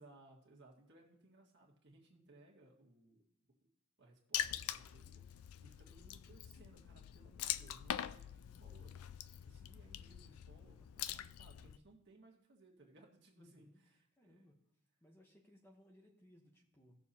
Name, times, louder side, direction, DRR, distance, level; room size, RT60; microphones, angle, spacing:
voice 1, 0.0-3.2 4.0-14.5, right 2 dB, 50° right, -2 dB, 1.7 m, -64 dB
Water / Splash splatter, 4.3-11.8, left 11 dB, 75° left, 0.3 m, -44 dB
voice 2, 13.4-14.6 15.0-17.0, equal, 10° left, 1 dB, 1.0 m, -64 dB
18.0 x 6.8 x 2.8 m, 0.78 s
head